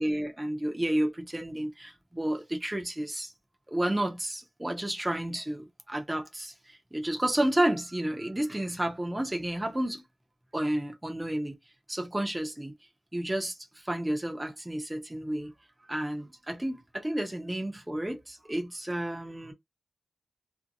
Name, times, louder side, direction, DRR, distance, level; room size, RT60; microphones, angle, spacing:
voice 1, 0.0-3.3 3.7-10.0 10.5-11.6 11.9-12.7 13.1-15.5 15.9-19.5, right 1 dB, 10° right, 0.6 m, -31 dB
2.6 x 2.1 x 2.5 m
wide cardioid pair, 150°, 0 cm